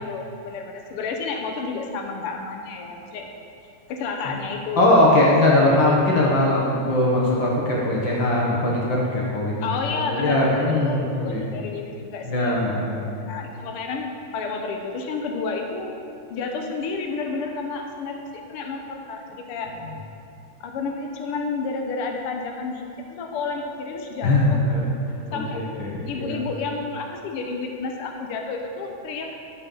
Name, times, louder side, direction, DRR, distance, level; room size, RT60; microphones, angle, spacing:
voice 1, 0.0-3.3 3.9-5.2 5.7-5.8 9.6-15.9 16.3-19.7 20.6-24.7 25.3-25.7 26.0-29.3, left 4 dB, 70° left, 3 dB, 1.4 m, -31 dB
voice 2, 4.8-9.6 9.9-11.0 11.3-11.4 12.2-13.1 24.2-24.8 25.3-25.9 26.2-26.4, left 1 dB, 55° left, -4 dB, 1.4 m, -20 dB
13.0 x 7.1 x 3.9 m, 2.5 s
omnidirectional pair, 3.4 m